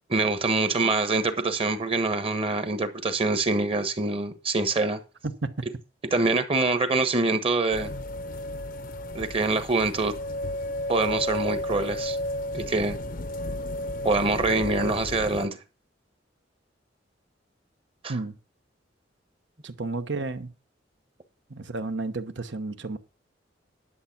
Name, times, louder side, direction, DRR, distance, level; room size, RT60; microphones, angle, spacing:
voice 1, 0.1-5.0 6.1-7.9 9.1-10.1 10.9-12.2 12.5-13.0 14.0-15.6 18.0-18.2, right 3 dB, 30° right, 1.2 m, -25 dB
voice 2, 5.2-5.6 18.1-18.4 19.6-20.5 21.5-23.0, right 3 dB, 70° right, 1.0 m, -32 dB
sound 1, 7.7-15.5, left 1 dB, 45° left, 0.7 m, -33 dB
11.0 x 7.1 x 5.9 m
head